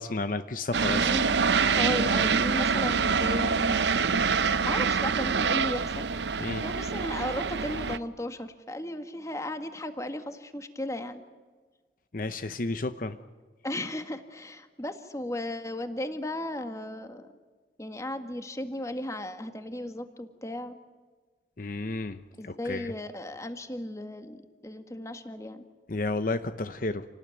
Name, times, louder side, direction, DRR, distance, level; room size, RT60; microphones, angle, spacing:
voice 1, 0.0-1.1 6.4-6.7 12.1-13.2 21.6-22.9 25.9-27.1, left 2 dB, 50° left, 10 dB, 0.9 m, -32 dB
voice 2, 0.7-1.4 1.7-6.1 6.6-11.2 13.6-17.3 17.8-20.7 22.4-25.6, left 1 dB, 20° left, 8 dB, 1.7 m, -35 dB
sound 1, 0.7-8.0, right 5 dB, 80° right, 0.7 m, -26 dB
28.5 x 18.5 x 9.4 m, 1.4 s
head